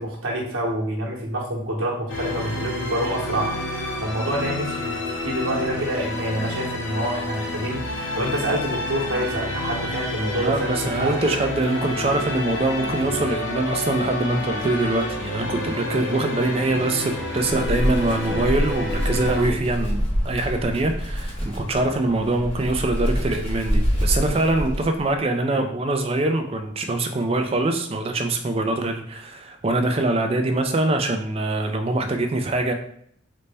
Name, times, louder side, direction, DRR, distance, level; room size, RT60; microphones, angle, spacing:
voice 1, 0.0-4.9 5.2-11.3 25.5-25.6, right 1 dB, 85° right, -2 dB, 0.9 m, -27 dB
sound 1, 2.1-19.5, left 2 dB, 70° left, 0.7 m, -29 dB
voice 2, 10.4-32.7, right 2 dB, 30° right, 6 dB, 0.3 m, -23 dB
Wind, 17.4-25.1, equal, 30° left, 0.8 m, -26 dB
4.0 x 2.1 x 3.3 m, 0.66 s
head